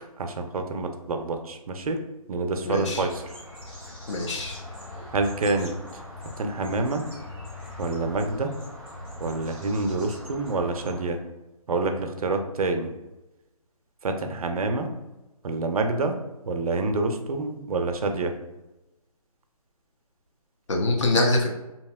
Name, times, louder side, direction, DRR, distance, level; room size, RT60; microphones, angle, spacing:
voice 1, 0.2-2.0 2.3-3.2 5.1-5.7 6.4-7.0 7.8-8.5 9.2-11.2 11.7-12.9 14.0-14.9 15.4-16.2 16.5-18.3, right 3 dB, 70° right, 5 dB, 0.5 m, -27 dB
voice 2, 2.6-3.1 4.1-4.6 20.7-21.5, left 2 dB, 50° left, 1 dB, 0.6 m, -24 dB
sound 1, 2.9-11.0, left 1 dB, 5° left, 0.6 m, -41 dB
2.8 x 2.8 x 2.2 m, 1.0 s
figure-of-eight pair, 155°, 19 cm